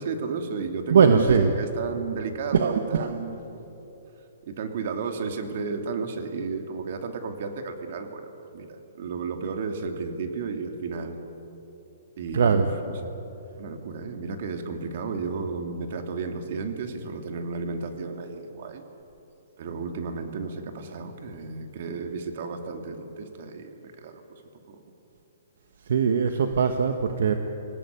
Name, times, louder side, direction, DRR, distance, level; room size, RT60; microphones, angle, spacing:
voice 1, 0.0-1.2 1.6-3.6 4.4-11.2 12.2-12.9 13.6-18.8 19.6-24.4 24.7-24.8, right 4 dB, 55° right, 5 dB, 2.7 m, -33 dB
voice 2, 0.9-1.5 2.5-3.1 12.3-12.7 25.9-27.3, right 6 dB, 70° right, 6 dB, 1.4 m, -20 dB
25.5 x 17.5 x 9.6 m, 3.0 s
hypercardioid pair, 155°, 0 cm